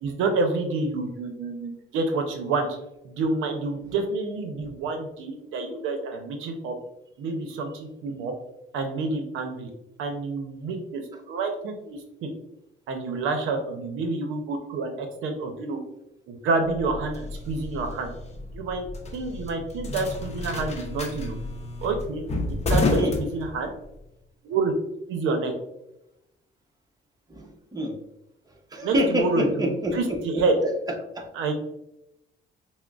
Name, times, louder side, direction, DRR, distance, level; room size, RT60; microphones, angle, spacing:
voice 1, 0.0-2.7 3.0-6.7 7.2-8.3 8.7-9.7 10.0-11.0 11.3-12.3 12.9-15.8 16.3-18.1 18.5-18.9 19.1-21.4 21.8-22.2 22.7-23.7 24.4-24.7 25.1-25.5 28.8-30.5 31.3-31.5, right 3 dB, 90° right, 5 dB, 0.6 m, -28 dB
Soda Machine, 16.7-24.0, left 2 dB, 35° left, 0.7 m, -30 dB
voice 2, 27.3-28.0 28.7-31.3, equal, 20° right, 1 dB, 0.8 m, -27 dB
5.9 x 2.0 x 2.3 m, 0.86 s
cardioid pair, 90°, 20 cm